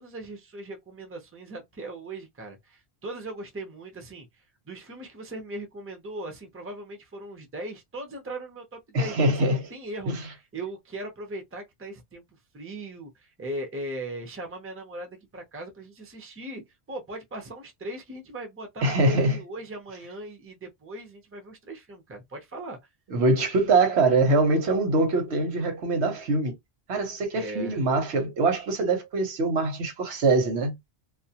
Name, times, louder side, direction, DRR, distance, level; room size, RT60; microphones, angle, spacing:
voice 1, 0.0-16.6 16.9-22.8 27.3-27.9, right 1 dB, 15° right, 0.5 m, -39 dB
voice 2, 8.9-9.7 10.1-10.2 18.8-19.4 23.1-26.5 26.9-30.8, right 2 dB, 85° right, 1.1 m, -23 dB
2.3 x 2.0 x 2.8 m
omnidirectional pair, 1.1 m